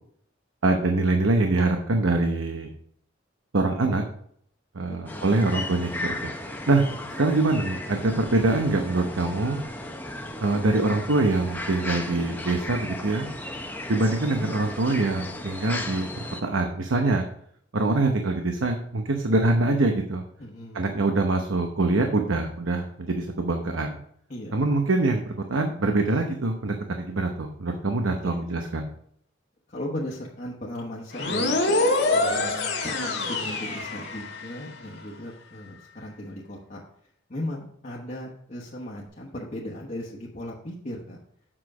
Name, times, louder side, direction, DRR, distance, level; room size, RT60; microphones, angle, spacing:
voice 1, 0.6-2.7 3.5-4.0 4.7-6.1 6.4-6.8 7.2-9.6 10.4-13.3 13.9-17.2 17.7-20.2 20.7-24.0 24.5-28.9, right 2 dB, 90° right, 4 dB, 0.9 m, -24 dB
voice 2, 4.9-5.3 14.0-14.5 20.4-20.9 24.3-24.6 28.1-28.4 29.7-31.8 32.1-36.8 37.3-41.2, left 1 dB, 40° left, -5 dB, 1.2 m, -37 dB
sound 1, 5.1-16.4, left 1 dB, 10° left, 0.8 m, -35 dB
sound 2, 31.1-34.6, left 2 dB, 60° left, 1.9 m, -25 dB
7.8 x 6.3 x 4.8 m, 0.66 s
head